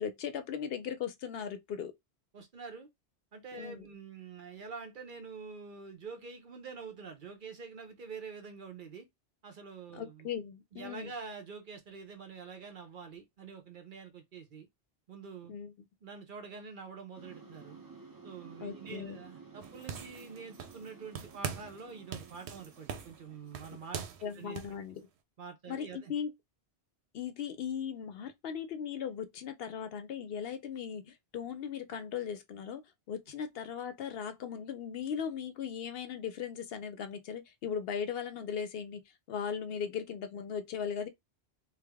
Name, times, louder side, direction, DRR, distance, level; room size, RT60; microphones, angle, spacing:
voice 1, 0.0-1.9 3.6-3.9 9.9-11.1 15.5-15.7 18.6-19.2 24.2-25.1 25.7-26.3 27.1-41.1, left 7 dB, 70° left, 0.7 m, -38 dB
voice 2, 2.3-2.9 3.3-9.1 9.4-10.3 10.7-14.7 15.1-15.5 16.0-17.8 18.2-24.6 25.4-26.1, right 5 dB, 55° right, 0.8 m, -46 dB
sound 1, 17.2-24.8, right 4 dB, 25° right, 0.5 m, -54 dB
sound 2, 19.6-20.9 21.2-21.8 22.1-24.8, right 7 dB, 90° right, 0.9 m, -42 dB
3.4 x 2.1 x 3.4 m
omnidirectional pair, 1.1 m